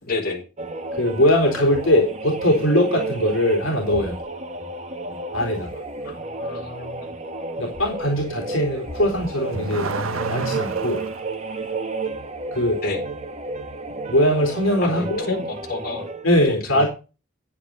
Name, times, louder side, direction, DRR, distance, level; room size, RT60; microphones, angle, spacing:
voice 1, 0.0-0.5 6.0-7.1 12.8-13.0 14.8-16.1 16.4-16.9, left 3 dB, 50° left, 4.6 m, -30 dB
sound 1, 0.6-16.3, right 3 dB, 35° right, 1.4 m, -32 dB
voice 2, 0.9-4.2 5.3-5.8 7.6-9.9 10.3-11.0 12.5-12.8 14.1-15.3 16.2-16.9, left 1 dB, 75° left, 3.5 m, -21 dB
Car / Accelerating revving vroom, 9.0-11.2, right 3 dB, 85° right, 1.1 m, -29 dB
10.0 x 9.8 x 4.0 m
head